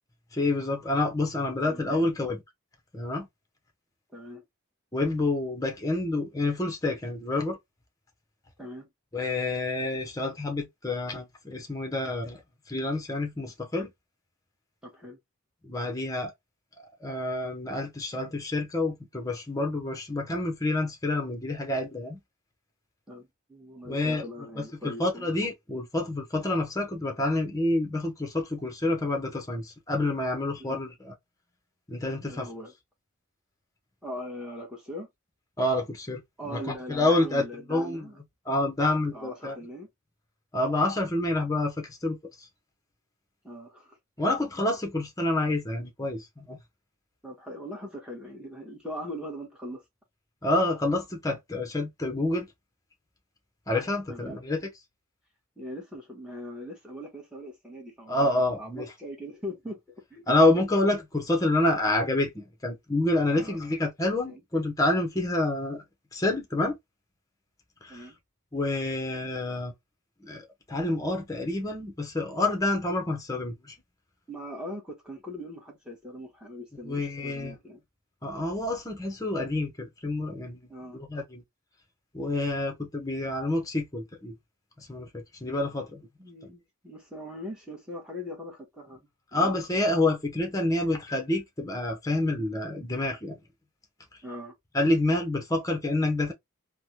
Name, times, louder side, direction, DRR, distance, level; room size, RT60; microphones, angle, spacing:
voice 1, 0.3-2.4 2.9-3.3 4.9-7.6 9.1-12.4 12.7-13.9 15.7-16.3 17.0-22.2 23.9-24.2 24.6-31.1 31.9-32.5 35.6-36.2 36.5-36.6 36.9-38.0 38.5-39.5 40.5-41.7 42.0-42.2 44.2-46.6 50.4-52.5 53.7-54.6 58.1-58.8 60.3-65.8 66.1-66.8 68.5-69.7 70.2-70.4 70.7-73.5 76.9-77.5 78.2-80.6 80.9-81.4 82.1-84.3 84.9-86.0 89.3-93.3 94.7-96.3, left 2 dB, 15° left, 0.7 m, -28 dB
voice 2, 1.6-2.0 4.1-4.4 8.6-8.9 14.8-15.2 23.1-25.3 30.6-30.8 32.2-32.7 34.0-35.1 36.4-38.2 39.1-39.9 43.4-44.0 47.2-49.8 54.1-54.4 55.6-59.8 60.1-60.4 63.3-63.6 64.2-64.4 67.9-68.2 74.3-77.8 80.7-81.0 86.2-89.6 94.2-94.5, equal, 5° right, 1.0 m, -41 dB
3.2 x 2.1 x 2.8 m
head